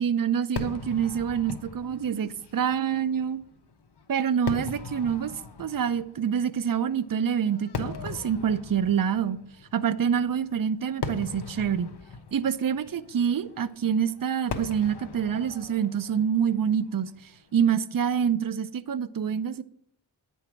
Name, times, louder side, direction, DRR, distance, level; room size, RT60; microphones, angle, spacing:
voice 1, 0.0-3.4 4.1-5.3 5.6-9.4 9.7-11.9 12.3-17.1 17.5-19.6, right 8 dB, 45° right, 0.6 m, -26 dB
Fireworks, 0.6-17.9, left 4 dB, 55° left, 1.1 m, -40 dB
9.3 x 5.4 x 7.4 m
cardioid pair, 60°, 48 cm